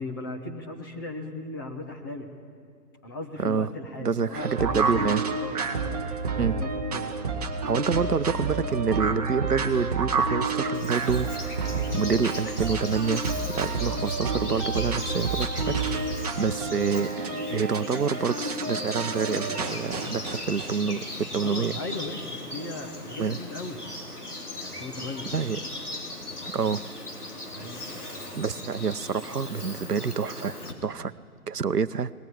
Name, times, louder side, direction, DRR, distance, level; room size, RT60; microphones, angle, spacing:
voice 1, 0.0-2.3 3.0-6.0 6.6-7.1 21.4-23.8 24.5-25.3 27.5-28.4, left 2 dB, 15° left, 2 dB, 1.0 m, -37 dB
voice 2, 3.4-3.7 4.0-5.2 6.4-6.6 7.6-15.8 16.4-21.8 23.2-23.4 25.3-25.6 26.5-26.8 28.3-31.1 31.5-32.1, right 6 dB, 75° right, 16 dB, 0.9 m, -27 dB
sound 1, 4.3-20.7, right 4 dB, 25° right, 1.1 m, -29 dB
Bird vocalization bird call bird song, 10.7-30.7, left 1 dB, 70° left, 4.1 m, -38 dB
21.0 x 20.0 x 9.8 m, 2.2 s
figure-of-eight pair, 140°, 47 cm